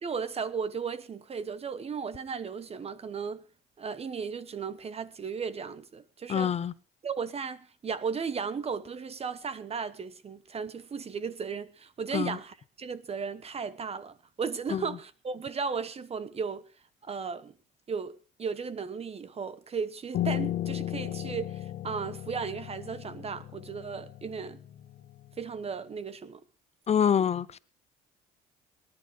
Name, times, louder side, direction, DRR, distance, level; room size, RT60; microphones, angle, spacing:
voice 1, 0.0-3.4 3.8-6.5 7.0-16.6 17.0-17.5 17.9-24.6 25.4-26.4, right 5 dB, 35° right, 1.0 m, -35 dB
voice 2, 6.3-6.7 12.1-12.4 14.7-14.8 26.9-27.6, left 8 dB, 35° left, 0.6 m, -26 dB
Piano, 20.1-25.4, left 12 dB, 65° left, 1.4 m, -35 dB
23.5 x 10.5 x 3.4 m
cardioid pair, 100°, 19 cm